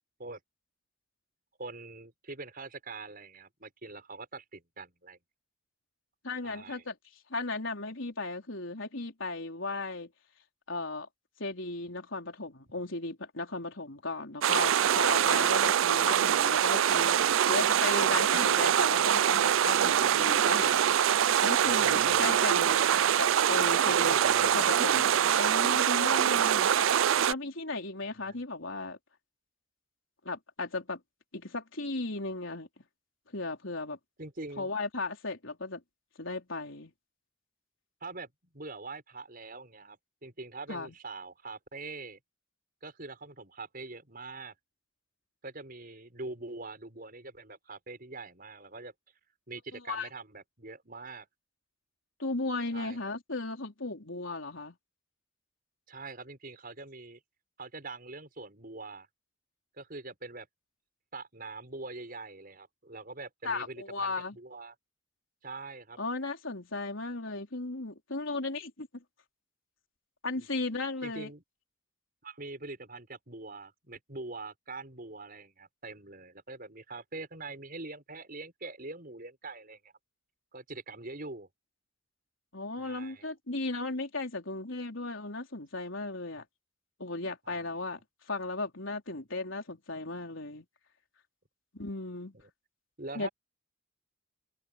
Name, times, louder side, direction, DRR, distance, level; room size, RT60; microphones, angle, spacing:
voice 1, 1.6-5.2 6.4-6.8 21.6-22.4 23.7-24.7 28.2-28.4 34.2-34.7 38.0-42.2 42.8-44.5 45.4-48.9 49.5-51.3 52.7-53.0 55.9-57.2 57.6-59.1 59.8-60.5 61.1-64.7 65.4-66.0 70.4-70.5 71.0-71.4 72.2-79.9 80.5-81.5 82.8-83.3 87.5-87.8 93.0-93.3, right 3 dB, 45° right, 6.1 m, -43 dB
voice 2, 6.2-7.0 7.3-10.1 10.7-11.1 11.4-20.8 21.4-22.9 23.2-26.7 27.3-29.0 30.2-31.0 31.3-32.8 33.3-34.0 34.6-35.8 36.2-36.9 40.7-40.9 49.7-50.1 52.2-54.8 63.4-64.4 66.0-69.0 70.2-71.3 82.5-86.5 87.0-88.0 88.3-90.6 91.7-92.3 93.1-93.3, left 3 dB, 70° left, 4.0 m, -36 dB
sound 1, 14.4-27.3, right 9 dB, 75° right, 0.4 m, -24 dB
head